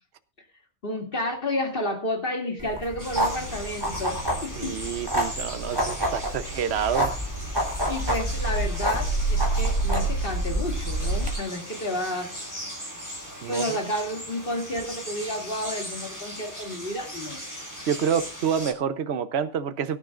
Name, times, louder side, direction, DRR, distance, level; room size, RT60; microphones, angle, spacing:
voice 1, 0.8-4.8 7.9-12.3 13.5-17.4, left 1 dB, 50° left, 2.8 m, -31 dB
sound 1, 2.6-11.3, right 1 dB, 20° right, 3.6 m, -27 dB
sound 2, 3.0-18.7, equal, 15° left, 5.4 m, -38 dB
voice 2, 4.5-7.1 13.4-13.9 17.9-20.0, right 7 dB, 60° right, 1.1 m, -28 dB
23.5 x 11.0 x 2.5 m
omnidirectional pair, 1.2 m